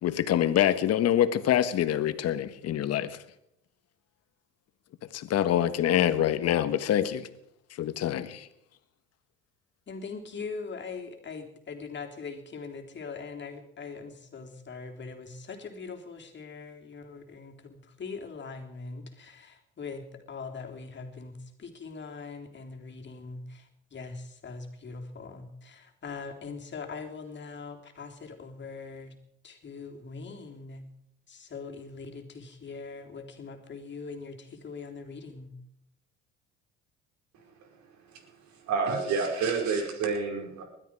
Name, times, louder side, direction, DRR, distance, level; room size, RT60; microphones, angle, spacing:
voice 1, 0.0-3.2 5.1-7.2 7.8-8.5, left 11 dB, 55° left, 1.5 m, -25 dB
voice 2, 9.9-29.1 29.4-30.9 31.3-35.5, left 4 dB, 35° left, 3.4 m, -41 dB
voice 3, 38.7-40.6, right 5 dB, 65° right, 4.9 m, -28 dB
20.5 x 12.5 x 4.8 m
supercardioid pair, 75°, 30 cm